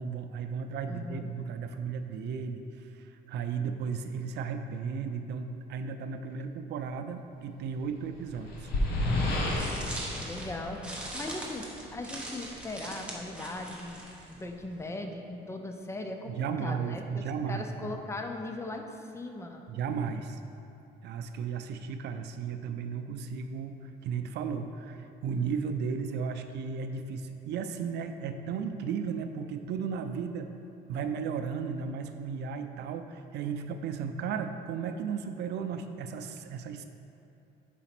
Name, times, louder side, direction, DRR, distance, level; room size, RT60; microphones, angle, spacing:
voice 1, 0.0-8.7 16.3-18.0 19.7-20.4 21.0-30.5 30.9-36.8, right 6 dB, 75° right, 8 dB, 0.5 m, -35 dB
voice 2, 0.9-1.3 10.2-11.7 11.9-19.6, left 2 dB, 15° left, 4 dB, 0.5 m, -39 dB
sound 1, 7.9-11.6, left 1 dB, 70° left, 1.1 m, -31 dB
sound 2, 9.2-14.8, right 1 dB, 5° right, 1.0 m, -42 dB
4.9 x 4.1 x 5.9 m, 2.8 s
cardioid pair, 110°, 18 cm